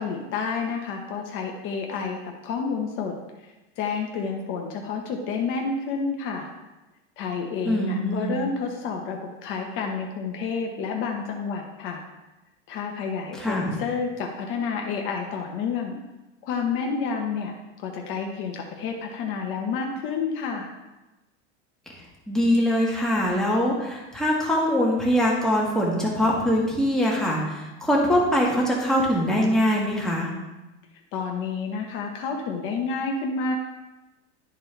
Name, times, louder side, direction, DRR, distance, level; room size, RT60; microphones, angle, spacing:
voice 1, 0.0-3.1 3.8-6.5 7.2-12.0 12.7-15.9 16.4-17.5 17.8-20.7 31.1-33.6, left 5 dB, 35° left, 2 dB, 1.1 m, -29 dB
voice 2, 7.6-8.4 13.4-13.8 22.0-30.3, equal, ahead, -4 dB, 1.5 m, -23 dB
12.0 x 4.5 x 3.4 m, 1.0 s
supercardioid pair, 160°, 34 cm